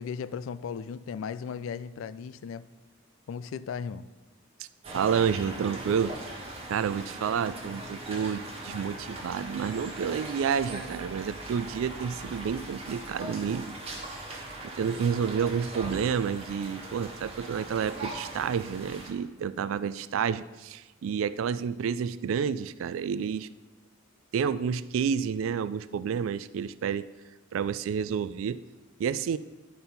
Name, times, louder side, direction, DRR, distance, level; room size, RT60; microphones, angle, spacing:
voice 1, 0.0-2.7 3.3-4.1, left 6 dB, 75° left, 15 dB, 0.3 m, -36 dB
sound 1, 4.8-19.1, right 2 dB, 30° right, 1.4 m, -40 dB
voice 2, 4.9-6.4 6.7-13.7 14.2-23.5 24.3-27.1 27.5-28.6 29.0-29.4, right 7 dB, 75° right, 16 dB, 0.3 m, -30 dB
11.0 x 4.4 x 5.3 m, 1.2 s
head